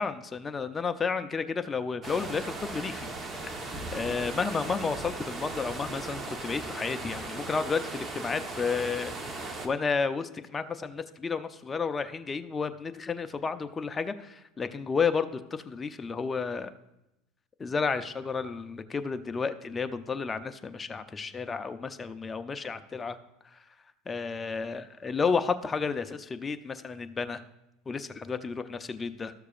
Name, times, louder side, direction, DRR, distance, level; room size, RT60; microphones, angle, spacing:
voice 1, 0.0-3.1 3.4-9.4 9.6-16.7 17.6-23.2 23.5-23.6 24.1-27.4 27.9-29.3, left 5 dB, 20° left, 9 dB, 0.5 m, -32 dB
sound 1, 2.0-9.7, right 2 dB, 25° right, 1.1 m, -38 dB
13.5 x 6.7 x 2.5 m, 0.90 s
supercardioid pair, 130°, 0 cm